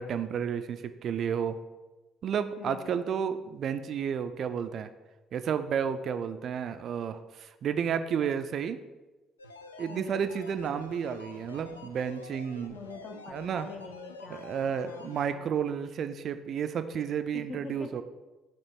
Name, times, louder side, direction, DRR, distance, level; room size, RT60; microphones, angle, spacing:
voice 1, 0.0-1.6 2.2-4.9 5.3-8.8 9.8-12.8 13.3-13.7 14.3-18.0, right 7 dB, 50° right, 10 dB, 0.3 m, -31 dB
voice 2, 2.6-3.1 9.9-10.4 12.7-15.5 17.3-18.0, left 4 dB, 45° left, 5 dB, 0.8 m, -44 dB
sound 1, 9.4-15.3, left 3 dB, 80° left, 0.3 m, -48 dB
6.7 x 3.0 x 5.8 m, 1.1 s
figure-of-eight pair, 50°, 0 cm